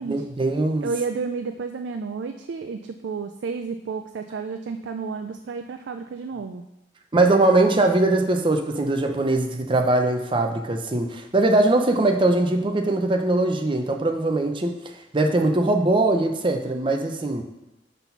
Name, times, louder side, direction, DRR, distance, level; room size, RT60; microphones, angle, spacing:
voice 1, 0.1-0.9 7.1-17.4, right 2 dB, 30° right, 4 dB, 0.7 m, -21 dB
voice 2, 0.8-6.6, right 5 dB, 70° right, 6 dB, 0.4 m, -31 dB
6.1 x 4.1 x 5.6 m, 0.90 s
head